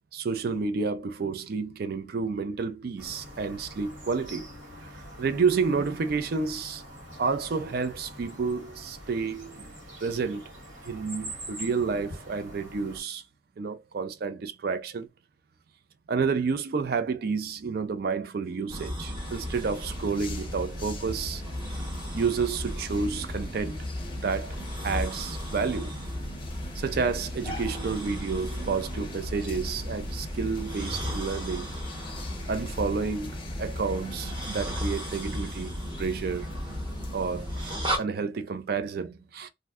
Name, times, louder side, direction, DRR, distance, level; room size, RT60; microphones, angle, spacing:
voice 1, 0.1-4.5 4.9-6.8 7.2-9.7 10.0-10.5 10.8-13.2 13.6-15.1 16.1-21.4 22.1-23.8 24.1-24.6 24.8-26.0 26.7-31.7 32.5-36.5 37.1-39.5, right 5 dB, 50° right, 0.4 m, -30 dB
sound 1, 3.0-13.0, equal, 80° right, 1.5 m, -44 dB
sound 2, 18.7-38.0, equal, 25° right, 0.8 m, -35 dB
sound 3, 19.1-38.0, left 4 dB, 25° left, 0.6 m, -47 dB
2.6 x 2.1 x 3.4 m
head